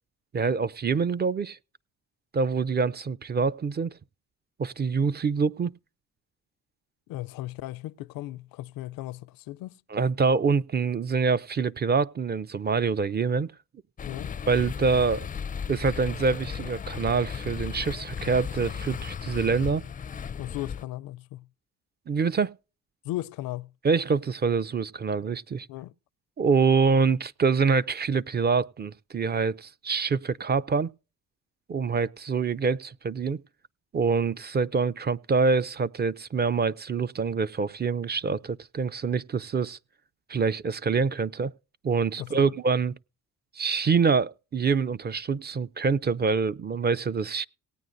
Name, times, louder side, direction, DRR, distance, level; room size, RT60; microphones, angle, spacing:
voice 1, 0.3-1.6 2.3-3.9 4.6-5.7 9.9-13.5 14.5-15.3 15.7-19.8 22.1-22.5 23.8-25.7 26.4-30.9 31.7-33.4 33.9-39.8 40.3-41.5 41.8-42.9 43.6-47.5, right 5 dB, 30° right, 0.5 m, -25 dB
voice 2, 7.1-9.8 14.1-14.3 20.4-21.5 23.0-23.7 25.7-25.9 42.2-42.6, left 16 dB, 80° left, 0.5 m, -36 dB
sound 1, 14.0-20.8, left 7 dB, 25° left, 0.4 m, -35 dB
18.5 x 9.2 x 2.6 m
supercardioid pair, 75°, 34 cm